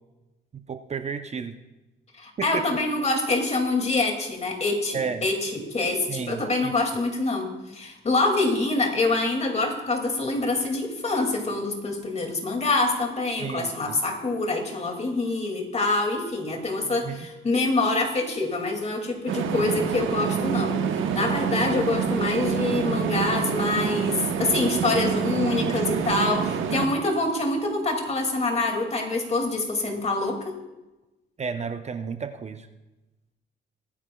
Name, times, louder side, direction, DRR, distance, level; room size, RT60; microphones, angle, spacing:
voice 1, 0.7-1.6 2.4-2.8 4.9-5.3 6.1-6.7 13.4-14.0 16.8-17.2 31.4-32.7, right 6 dB, 35° right, 8 dB, 0.7 m, -32 dB
voice 2, 2.2-20.8 21.1-30.6, left 2 dB, 35° left, 3 dB, 2.3 m, -25 dB
sound 1, 19.3-26.9, right 7 dB, 80° right, 1.1 m, -26 dB
22.0 x 9.6 x 2.3 m, 1.1 s
cardioid pair, 90°, 20 cm